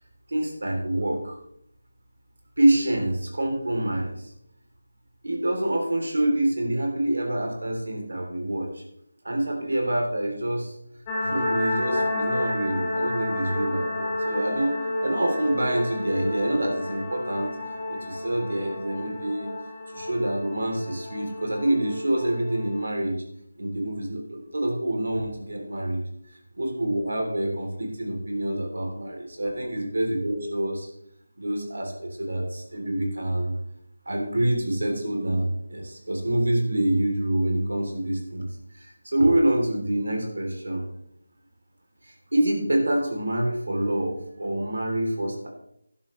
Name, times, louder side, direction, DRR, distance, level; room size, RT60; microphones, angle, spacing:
voice 1, 0.3-1.4 2.6-4.3 5.2-8.8 9.2-10.7 11.2-17.5 17.9-19.5 19.9-23.2 23.6-26.0 26.5-30.9 31.4-33.5 34.0-38.5 38.7-40.8 42.0-45.5, right 1 dB, 75° right, 1 dB, 3.1 m, -26 dB
sound 1, 11.1-22.9, left 1 dB, 15° left, 1.5 m, -30 dB
12.0 x 11.5 x 3.2 m, 0.73 s
figure-of-eight pair, 175°, 0 cm